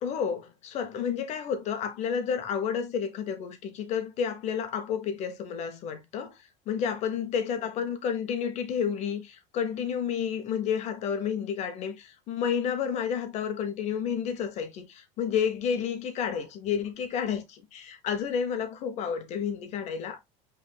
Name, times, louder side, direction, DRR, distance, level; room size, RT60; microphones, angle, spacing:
voice 1, 0.0-17.4 17.7-20.2, left 7 dB, 40° left, 0.8 m, -30 dB
7.0 x 3.2 x 2.2 m
supercardioid pair, 140°, 17 cm